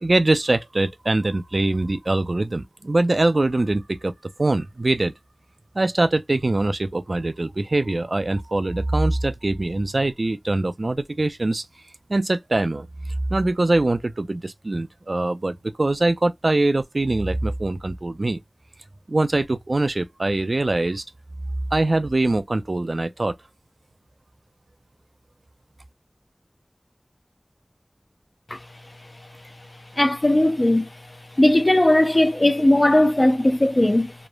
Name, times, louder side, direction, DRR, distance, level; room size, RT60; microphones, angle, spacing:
voice 1, 0.0-4.1 4.4-5.1 5.8-11.6 12.1-12.9 13.3-18.4 19.1-21.0 21.7-23.3, right 2 dB, 75° right, 0.3 m, -23 dB
voice 2, 30.0-30.9 31.4-34.1, left 1 dB, 50° left, 0.5 m, -18 dB
3.0 x 2.0 x 2.2 m
wide cardioid pair, 45°, 0 cm